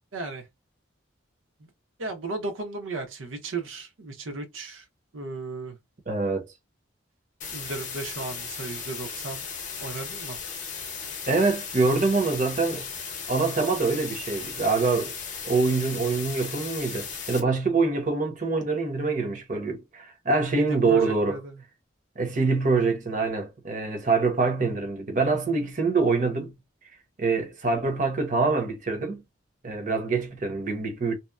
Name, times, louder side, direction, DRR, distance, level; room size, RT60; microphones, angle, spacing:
voice 1, 0.1-0.5 2.0-4.9 5.1-5.8 7.5-9.4 9.8-10.4 20.6-21.6, right 2 dB, 85° right, 0.8 m, -35 dB
voice 2, 6.1-6.4 11.3-12.9 13.3-15.1 15.4-21.4 22.2-26.5 27.2-29.2 29.6-31.1, right 3 dB, 40° right, 0.7 m, -25 dB
sound 1, 7.4-17.4, left 6 dB, 40° left, 0.7 m, -36 dB
2.8 x 2.0 x 2.3 m
head